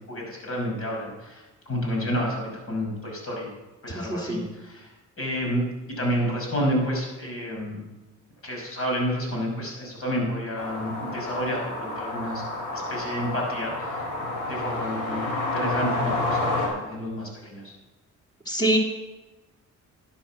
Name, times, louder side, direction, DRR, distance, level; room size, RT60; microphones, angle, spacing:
voice 1, 0.1-3.5 3.8-4.9 5.2-7.8 8.4-12.4 12.7-14.1 14.5-15.3 15.5-17.7, equal, 50° left, -1 dB, 5.7 m, -30 dB
voice 2, 3.9-4.4 18.5-18.8, right 1 dB, 15° left, 0 dB, 3.1 m, -24 dB
sound 1, 10.6-16.7, left 2 dB, 90° left, 3.9 m, -29 dB
12.0 x 10.0 x 5.9 m, 1.1 s
cardioid pair, 90°, 30 cm